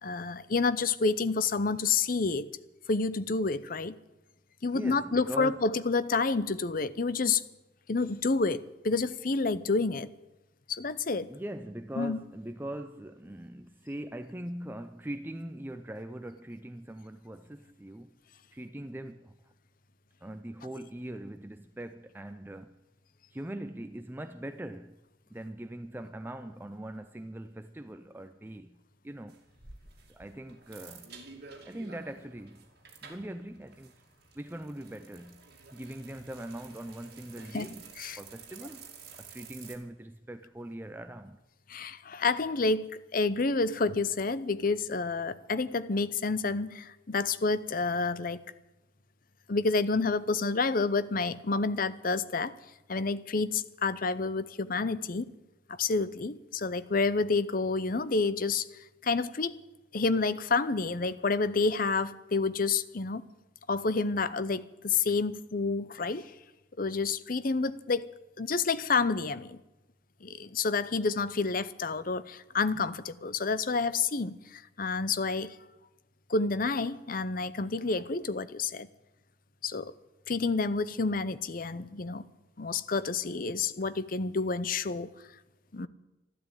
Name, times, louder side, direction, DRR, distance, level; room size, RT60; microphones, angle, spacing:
voice 1, 0.0-2.5 2.9-3.9 4.6-7.4 7.9-10.1 10.7-11.3 12.0-12.2 37.5-38.2 41.7-48.4 49.5-52.6 52.9-55.2 55.7-58.7 59.0-59.6 59.9-63.3 63.7-66.3 66.8-68.1 68.4-69.6 70.2-75.6 76.3-78.9 79.6-79.9 80.3-82.2 82.6-85.1 85.7-85.9, left 4 dB, 45° left, 0.7 m, -29 dB
voice 2, 4.7-5.7 11.3-18.2 18.5-19.5 20.2-22.8 23.3-25.0 25.3-28.8 29.0-29.4 30.1-31.1 31.7-32.7 33.0-33.9 34.3-38.9 39.2-41.4, right 1 dB, 10° right, 0.5 m, -41 dB
sound 1, 29.3-39.8, right 5 dB, 55° right, 2.5 m, -51 dB
13.0 x 12.0 x 8.9 m
head